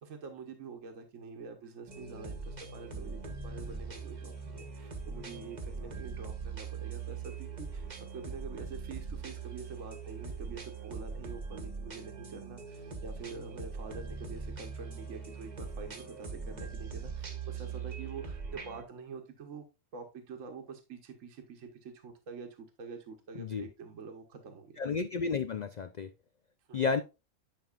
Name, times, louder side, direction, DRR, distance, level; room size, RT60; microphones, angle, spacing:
voice 1, 0.0-7.9 8.1-19.6 19.9-24.8 26.7-26.9, right 5 dB, 75° right, 1.5 m, -46 dB
sound 1, 1.9-18.8, right 5 dB, 35° right, 1.2 m, -41 dB
voice 2, 24.8-26.1 26.7-27.0, left 5 dB, 80° left, 0.3 m, -31 dB
10.5 x 5.4 x 2.4 m
omnidirectional pair, 1.4 m